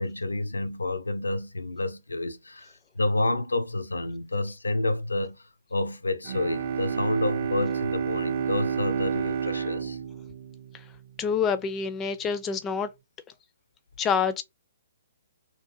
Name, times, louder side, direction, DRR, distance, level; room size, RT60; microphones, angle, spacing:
voice 1, 0.0-5.4 5.7-10.0, left 2 dB, 75° left, 0.5 m, -29 dB
Bowed string instrument, 6.2-11.2, right 7 dB, 45° right, 0.4 m, -30 dB
voice 2, 11.2-12.9 14.0-14.4, left 6 dB, 20° left, 0.4 m, -26 dB
2.7 x 2.5 x 2.5 m
figure-of-eight pair, 125°, 0 cm